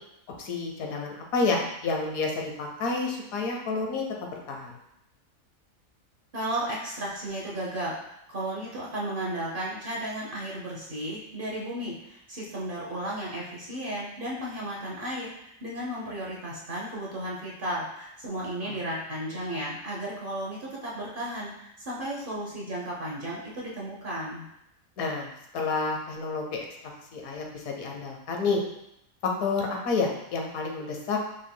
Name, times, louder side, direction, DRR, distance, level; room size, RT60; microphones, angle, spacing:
voice 1, 0.4-4.7 18.6-18.7 25.0-26.6 27.1-28.6 29.2-31.2, left 4 dB, 80° left, 1 dB, 1.2 m, -29 dB
voice 2, 6.3-7.9 8.3-24.4, right 1 dB, 45° right, -4 dB, 0.9 m, -34 dB
5.3 x 3.5 x 2.2 m, 0.80 s
omnidirectional pair, 1.5 m